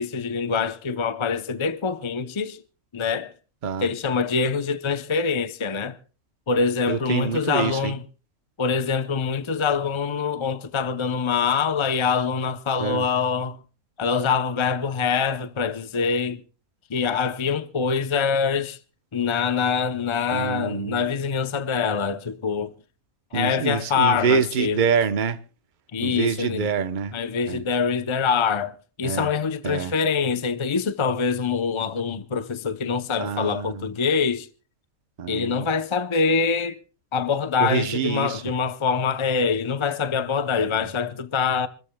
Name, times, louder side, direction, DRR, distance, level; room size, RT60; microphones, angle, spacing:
voice 1, 0.0-2.6 2.9-3.3 3.8-6.0 6.5-8.0 8.6-13.6 14.0-16.4 16.9-18.8 19.1-22.7 23.3-24.8 25.9-26.7 27.1-34.5 35.3-36.8 37.1-41.7, left 5 dB, 40° left, 0.4 m, -24 dB
voice 2, 6.9-7.9 12.8-13.1 20.3-21.1 23.3-25.4 26.0-27.1 27.5-27.6 29.0-29.3 29.6-29.9 33.2-33.9 35.2-35.7 37.6-38.4 40.6-40.9, right 6 dB, 40° right, 0.9 m, -26 dB
27.5 x 14.0 x 2.2 m
omnidirectional pair, 1.5 m